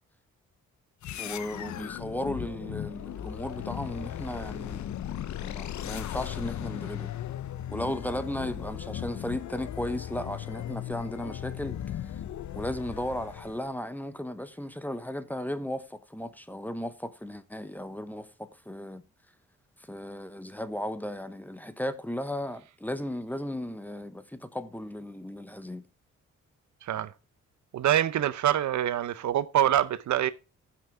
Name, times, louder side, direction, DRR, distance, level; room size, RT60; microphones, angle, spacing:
sound 1, 1.0-13.7, left 11 dB, 75° left, 0.8 m, -37 dB
voice 1, 1.2-7.1 7.7-12.0 12.5-19.0 19.9-25.8, left 1 dB, 5° left, 1.0 m, -35 dB
voice 2, 26.8-27.1 27.7-30.3, right 11 dB, 75° right, 0.8 m, -25 dB
15.0 x 6.0 x 3.5 m
cardioid pair, 105°, 29 cm